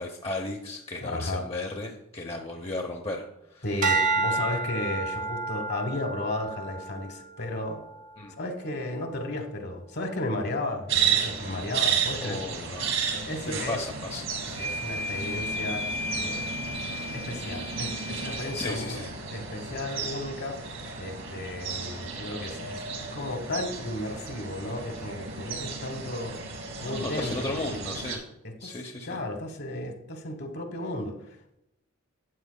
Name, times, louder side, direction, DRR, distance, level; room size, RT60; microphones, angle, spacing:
voice 1, 0.0-3.2 3.5-3.6 8.2-8.4 12.2-12.9 13.4-14.3 18.5-19.1 26.8-28.2 28.6-29.2, left 2 dB, 25° left, 1 dB, 0.7 m, -35 dB
voice 2, 1.0-1.4 3.6-7.8 8.4-12.4 13.1-13.8 14.6-16.4 17.1-19.0 19.3-20.6 21.0-22.9 23.1-26.4 26.8-27.8 28.4-28.7 29.0-31.6, left 1 dB, 50° left, 5 dB, 1.2 m, -34 dB
sound 1, 3.8-8.3 8.8-9.2, right 3 dB, 35° right, 0.7 m, -30 dB
sound 2, 10.9-28.2, right 6 dB, 65° right, 2.5 m, -33 dB
sound 3, 14.5-18.8, left 3 dB, 10° left, 0.3 m, -35 dB
12.5 x 9.0 x 2.2 m, 0.83 s
head